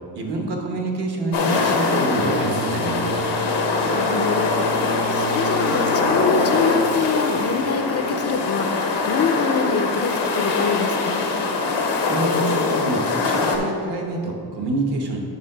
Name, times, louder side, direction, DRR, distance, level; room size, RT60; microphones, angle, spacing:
voice 1, 0.2-3.2 12.1-15.2, right 2 dB, 70° right, 1 dB, 1.2 m, -27 dB
sound 1, 1.3-13.6, left 3 dB, 90° left, 1.0 m, -22 dB
sound 2, 2.2-7.6, right 4 dB, 35° right, 0.4 m, -33 dB
voice 2, 3.9-11.3, left 5 dB, 40° left, 6 dB, 0.4 m, -25 dB
7.3 x 3.8 x 6.5 m, 2.3 s
wide cardioid pair, 175°, 41 cm